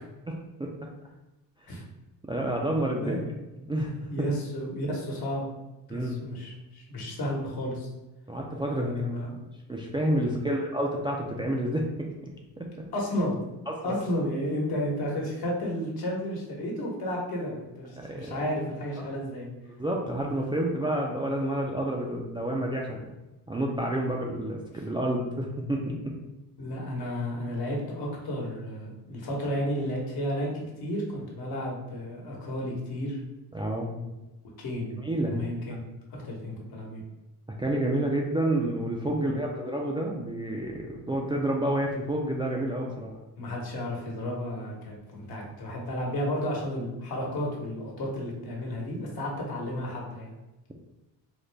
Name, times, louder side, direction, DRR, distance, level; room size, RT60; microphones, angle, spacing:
voice 1, 2.3-3.2 3.6-4.3 5.9-6.2 8.3-8.9 9.7-11.9 12.6-12.9 13.7-13.9 18.0-18.4 19.8-23.0 23.5-26.1 33.5-33.9 35.0-35.4 37.5-43.1, right 1 dB, 15° right, -2 dB, 0.3 m, -29 dB
voice 2, 4.1-5.4 5.9-7.9 8.7-9.4 10.2-10.4 12.9-13.4 13.8-19.5 26.6-33.2 34.6-35.0 35.3-35.8 36.1-37.0 39.2-39.4 43.4-50.3, equal, 60° left, -2 dB, 1.2 m, -32 dB
4.0 x 2.1 x 3.2 m, 1.0 s
cardioid pair, 95°, 41 cm